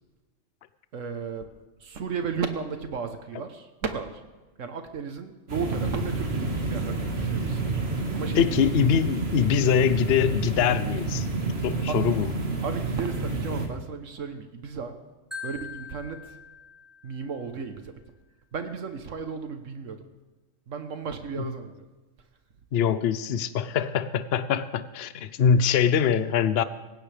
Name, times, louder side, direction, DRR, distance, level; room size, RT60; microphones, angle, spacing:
voice 1, 0.9-1.5 1.8-4.2 4.6-8.7 11.9-12.1 12.6-15.0 15.4-16.4 17.0-18.0 18.5-20.1 20.7-21.9, right 5 dB, 70° right, 7 dB, 1.4 m, -34 dB
sound 1, 5.5-13.7, right 3 dB, 50° right, 2.0 m, -29 dB
voice 2, 8.4-11.3 11.6-12.3 21.4-21.5 22.7-26.6, left 7 dB, 55° left, 13 dB, 0.9 m, -23 dB
Marimba xylophone, 15.3-17.4, left 5 dB, ahead, 1.4 m, -42 dB
17.5 x 17.0 x 3.4 m, 1.2 s
omnidirectional pair, 1.4 m